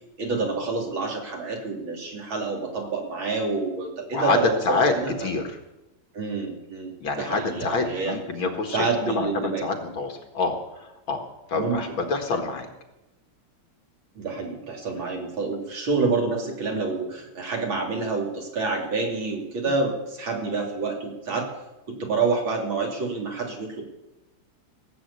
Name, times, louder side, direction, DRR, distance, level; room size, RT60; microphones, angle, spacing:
voice 1, 0.2-5.1 6.1-6.9 7.2-8.2 8.7-9.6 11.5-12.1 14.1-21.5 21.9-23.8, right 4 dB, 65° right, 0 dB, 3.4 m, -28 dB
voice 2, 5.2-5.6 7.0-8.9 9.2-11.2 11.5-12.7 19.7-19.8, left 3 dB, 65° left, 4 dB, 2.5 m, -27 dB
18.0 x 7.8 x 8.2 m, 0.98 s
omnidirectional pair, 2.3 m